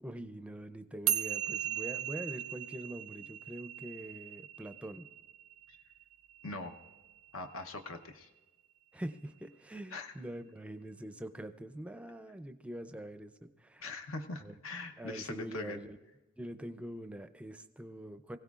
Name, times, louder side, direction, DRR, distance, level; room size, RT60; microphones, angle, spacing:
voice 1, 0.0-5.1 8.9-13.9 14.4-14.5 15.0-16.0 16.4-18.4, right 1 dB, 5° right, 9 dB, 0.5 m, -44 dB
sound 1, 1.1-7.6, right 11 dB, 85° right, 0.5 m, -38 dB
voice 2, 6.4-6.8 7.3-8.3 9.9-10.1 13.8-15.8, left 2 dB, 75° left, 6 dB, 0.9 m, -42 dB
23.0 x 16.0 x 2.4 m, 1.2 s
head